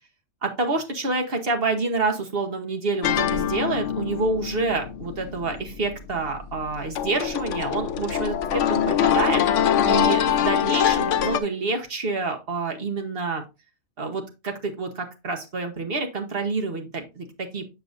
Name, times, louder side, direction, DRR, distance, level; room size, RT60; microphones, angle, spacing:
voice 1, 0.4-9.4 9.9-13.4 14.0-17.7, right 3 dB, 50° right, 4 dB, 1.3 m, -28 dB
sound 1, 3.0-11.4, left 9 dB, 80° left, 0.9 m, -24 dB
7.2 x 6.6 x 2.6 m, 0.26 s
omnidirectional pair, 1.3 m